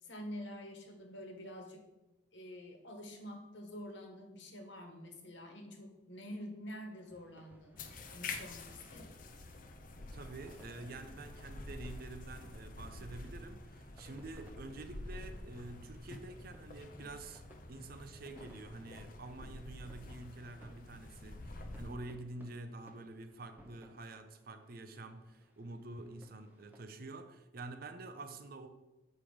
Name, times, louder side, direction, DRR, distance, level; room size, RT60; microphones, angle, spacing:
voice 1, 0.0-1.8 2.3-7.8 8.1-9.1, left 1 dB, 65° left, 1.5 m, -47 dB
sound 1, 6.9-26.9, equal, 10° right, 0.8 m, -65 dB
sound 2, 7.8-22.0, left 2 dB, 45° left, 0.7 m, -48 dB
voice 2, 10.1-17.4 17.7-28.7, right 2 dB, 50° right, 0.6 m, -48 dB
7.5 x 5.3 x 4.9 m
head